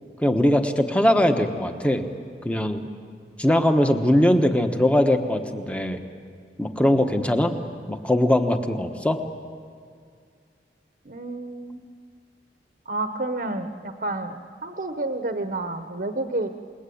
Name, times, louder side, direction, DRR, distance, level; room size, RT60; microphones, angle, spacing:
voice 1, 0.2-2.0 2.4-2.9 3.4-6.0 6.6-7.5 7.9-9.2, left 1 dB, 5° left, 6 dB, 1.3 m, -21 dB
voice 2, 11.0-11.8 12.9-16.5, right 2 dB, 50° right, 7 dB, 1.1 m, -30 dB
28.0 x 21.0 x 8.6 m, 2.2 s
head